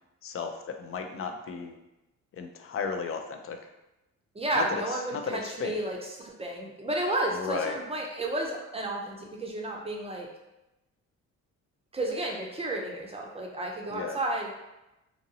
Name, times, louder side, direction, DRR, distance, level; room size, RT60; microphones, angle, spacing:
voice 1, 0.2-1.8 2.3-3.7 4.5-5.8 7.3-7.8 13.9-14.2, left 5 dB, 45° left, 5 dB, 0.4 m, -34 dB
voice 2, 4.3-10.3 11.9-14.5, right 1 dB, 20° right, 0 dB, 0.5 m, -32 dB
2.8 x 2.6 x 2.7 m, 0.95 s
cardioid pair, 90°, 30 cm